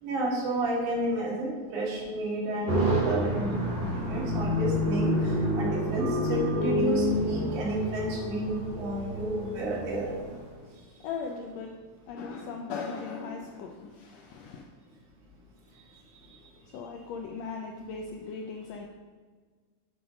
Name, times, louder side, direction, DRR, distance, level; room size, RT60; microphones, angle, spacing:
voice 1, 0.0-10.1, right 1 dB, 80° right, -3 dB, 2.9 m, -31 dB
sound 1, 2.7-10.4, equal, 50° right, 0.8 m, -29 dB
voice 2, 11.0-11.7 12.1-14.7 16.6-18.9, left 5 dB, 80° left, 2 dB, 1.5 m, -38 dB
7.8 x 3.7 x 5.0 m, 1.5 s
omnidirectional pair, 3.5 m